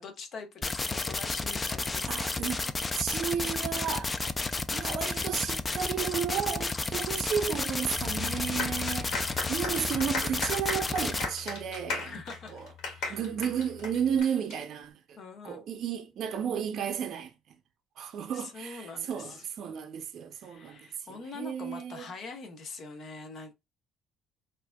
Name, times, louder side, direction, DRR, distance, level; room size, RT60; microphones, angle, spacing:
voice 1, 0.0-2.3 12.0-12.6 13.0-13.2 15.2-15.6 18.3-19.5 20.3-23.5, left 4 dB, 50° left, 0.8 m, -44 dB
sound 1, 0.6-11.3, left 3 dB, 20° left, 0.4 m, -32 dB
voice 2, 2.1-2.6 2.9-4.1 4.7-12.2 12.5-12.7 13.1-15.2 15.4-17.6 18.0-22.1, right 8 dB, 55° right, 0.5 m, -33 dB
Bass guitar, 8.0-14.2, left 10 dB, 5° left, 1.3 m, -45 dB
sound 2, 8.6-14.5, left 3 dB, 70° left, 1.6 m, -36 dB
4.6 x 2.6 x 2.2 m
cardioid pair, 115°, 0 cm